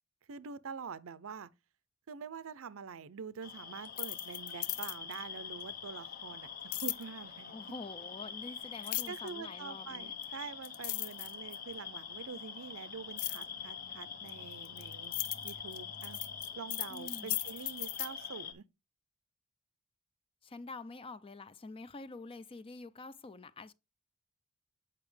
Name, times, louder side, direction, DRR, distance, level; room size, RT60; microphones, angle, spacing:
voice 1, 0.3-1.5 2.1-7.5 8.8-15.1 15.4-16.2 16.5-18.6, right 5 dB, 65° right, 0.6 m, -46 dB
sound 1, 3.4-18.5, left 6 dB, 40° left, 0.8 m, -45 dB
sound 2, 3.9-5.2 6.7-7.0 8.8-9.3 10.2-10.3 10.6-11.7 13.2-13.4 14.3-18.1, left 15 dB, 75° left, 0.5 m, -37 dB
voice 2, 7.5-10.1 16.9-17.4 20.4-23.7, left 3 dB, 25° left, 0.4 m, -47 dB
8.3 x 5.7 x 3.2 m
head